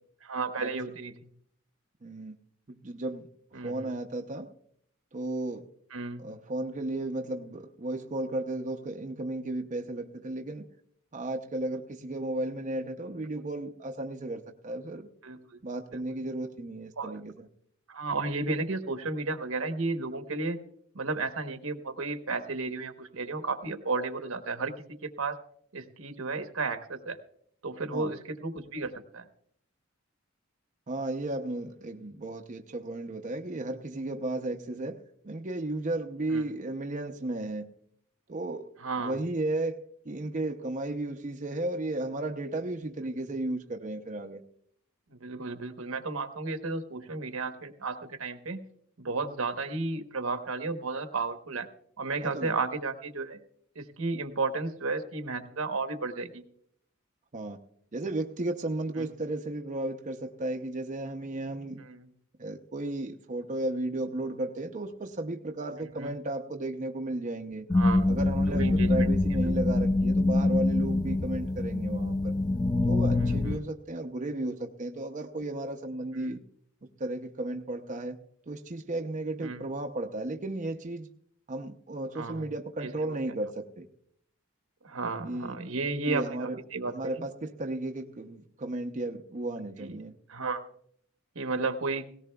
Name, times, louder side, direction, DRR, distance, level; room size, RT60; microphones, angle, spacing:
voice 1, 0.2-1.3 3.5-3.9 5.9-6.2 15.2-15.6 15.9-16.0 17.0-17.2 17.9-20.6 20.9-25.4 25.7-27.2 27.6-29.3 36.3-36.4 38.8-39.2 45.1-48.6 49.0-51.7 52.0-53.4 53.7-56.4 59.0-59.1 61.8-62.1 66.0-66.1 67.7-68.1 68.5-69.1 69.4-69.5 73.2-73.6 76.1-76.4 79.4-79.6 82.1-82.4 82.8-83.2 84.8-87.2 89.8-90.0 90.3-90.7 91.3-92.0, right 3 dB, 85° right, 8 dB, 1.1 m, -33 dB
voice 2, 2.0-2.4 2.7-4.5 5.1-5.7 6.2-10.7 11.1-15.1 15.6-17.5 27.9-28.1 30.9-37.7 38.3-38.7 39.0-39.8 40.0-44.4 52.2-52.5 57.3-57.6 57.9-61.8 62.4-67.7 68.1-72.4 72.9-76.4 77.0-78.2 78.5-81.1 81.5-83.9 85.2-85.5 86.1-86.6 86.8-90.2, right 2 dB, 35° right, 3 dB, 0.6 m, -34 dB
sound 1, 67.7-73.6, left 2 dB, 20° left, 0.4 m, -25 dB
18.0 x 17.0 x 2.3 m, 0.67 s
head